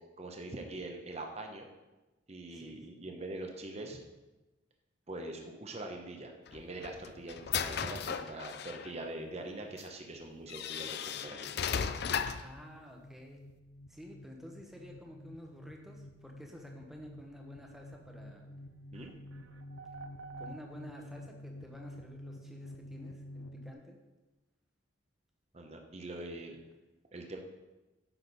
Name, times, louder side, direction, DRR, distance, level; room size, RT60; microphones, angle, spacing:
voice 1, 0.2-1.7 2.3-4.0 5.1-11.5 18.9-19.1 25.5-26.6 27.1-27.4, right 2 dB, 30° right, 3 dB, 0.9 m, -43 dB
voice 2, 2.5-2.8 12.4-13.5 13.9-18.6 20.4-24.0, equal, ahead, 1 dB, 1.1 m, -50 dB
sound 1, 6.5-8.9 9.8-9.9 10.5-12.5, left 7 dB, 55° left, 0.4 m, -36 dB
sound 2, 6.7-23.7, left 1 dB, 70° left, 0.8 m, -51 dB
sound 3, 18.9-21.2, right 4 dB, 80° right, 0.7 m, -49 dB
10.0 x 6.3 x 4.1 m, 1.1 s
head